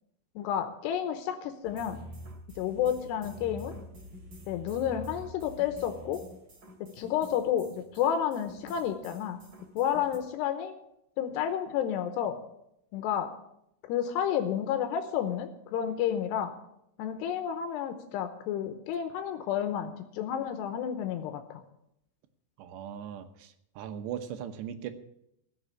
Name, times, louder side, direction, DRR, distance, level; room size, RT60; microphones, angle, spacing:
voice 1, 0.4-2.0 2.6-3.7 4.5-6.2 7.0-9.4 9.7-10.7 11.2-12.4 12.9-13.3 13.9-16.5 17.0-21.6, left 9 dB, 85° left, 7 dB, 3.0 m, -31 dB
sound 1, 1.6-10.2, right 1 dB, 35° right, 2.4 m, -47 dB
voice 2, 22.6-24.9, right 9 dB, 85° right, 8 dB, 3.2 m, -39 dB
15.5 x 6.9 x 9.6 m, 0.79 s
omnidirectional pair, 4.9 m